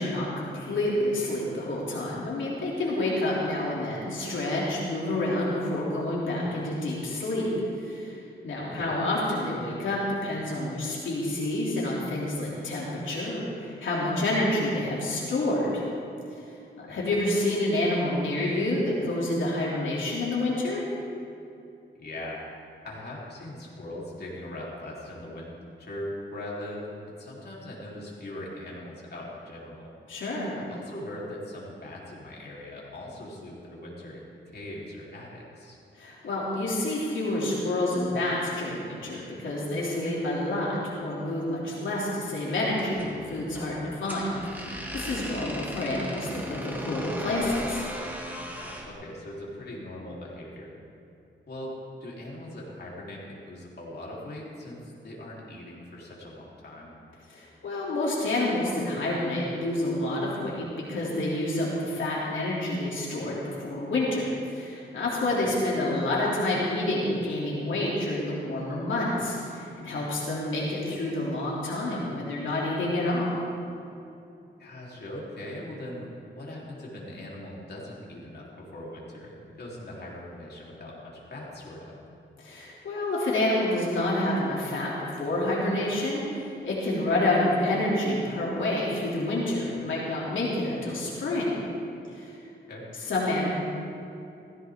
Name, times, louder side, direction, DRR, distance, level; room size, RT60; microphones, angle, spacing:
voice 1, 0.0-7.5 7.8-15.8 16.3-16.5 16.8-20.9 30.1-30.5 36.0-47.8 57.3-73.3 82.4-91.5 92.1-92.4 93.1-93.5, left 1 dB, 90° left, -5 dB, 3.0 m, -28 dB
voice 2, 21.9-22.4 22.8-25.5 25.8-29.9 30.6-34.3 34.5-35.8 48.8-50.8 51.5-51.7 52.0-57.0 65.4-65.5 74.6-82.0 92.7-92.9, left 1 dB, 60° left, -5 dB, 3.7 m, -40 dB
sound 1, 42.7-48.9, equal, 10° right, 2.0 m, -38 dB
16.5 x 15.0 x 3.7 m, 2.7 s
wide cardioid pair, 105°, 19 cm